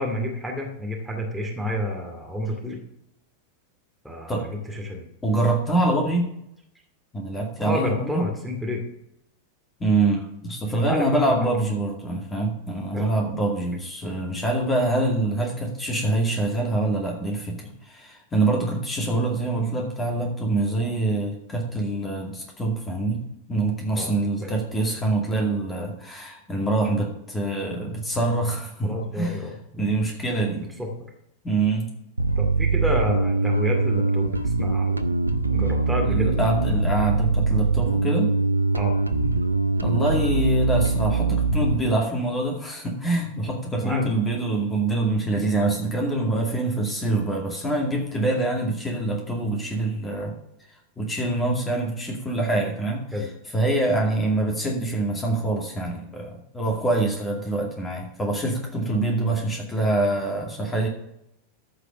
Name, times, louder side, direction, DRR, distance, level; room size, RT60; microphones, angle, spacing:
voice 1, 0.0-2.8 4.0-5.1 7.6-8.8 10.7-11.5 12.9-13.1 24.0-24.1 24.4-24.5 28.8-30.0 30.5-31.1 32.4-35.1 35.5-36.4 38.7-39.0 43.8-44.1 53.1-53.3, left 1 dB, 5° right, -1 dB, 2.4 m, -30 dB
voice 2, 5.2-6.3 7.1-8.3 9.8-23.2 23.5-29.4 29.8-30.6 31.4-31.9 36.1-38.3 39.8-50.4 51.0-53.0 53.5-60.9, right 2 dB, 15° left, 0 dB, 2.3 m, -25 dB
Bass guitar, 32.2-41.8, right 3 dB, 85° right, 0.6 m, -22 dB
14.0 x 5.0 x 6.3 m, 0.79 s
figure-of-eight pair, 90°, 0 cm